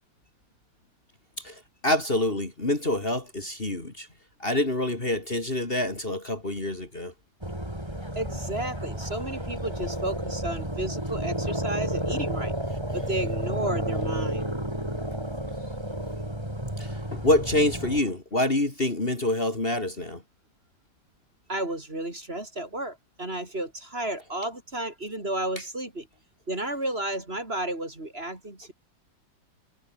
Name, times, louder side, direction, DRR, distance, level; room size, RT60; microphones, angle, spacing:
voice 1, 1.4-4.1 4.4-7.1 16.8-20.2, left 1 dB, 30° left, 3.3 m, -26 dB
sound 1, 7.4-18.0, right 1 dB, 15° right, 6.6 m, -31 dB
voice 2, 8.1-12.5 12.9-14.4 21.5-26.1 26.5-28.7, right 1 dB, 30° right, 4.5 m, -32 dB
omnidirectional pair, 2.0 m